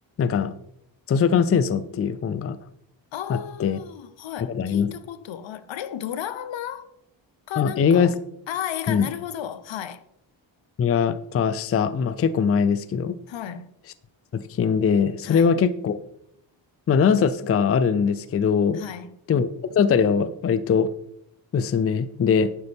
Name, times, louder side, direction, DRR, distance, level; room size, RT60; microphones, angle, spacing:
voice 1, 0.2-0.5 1.1-2.6 3.3-3.8 4.5-4.9 7.6-8.2 8.9-9.1 10.8-13.2 14.3-16.0 16.9-18.8 19.3-19.5 19.8-20.9 21.5-22.5, left 6 dB, 30° left, 0.4 m, -21 dB
voice 2, 3.1-6.9 7.5-8.1 8.5-10.0 13.3-13.7 15.2-15.5 18.7-19.2, left 10 dB, 70° left, 0.9 m, -34 dB
11.0 x 9.6 x 3.5 m
wide cardioid pair, 140°, 47 cm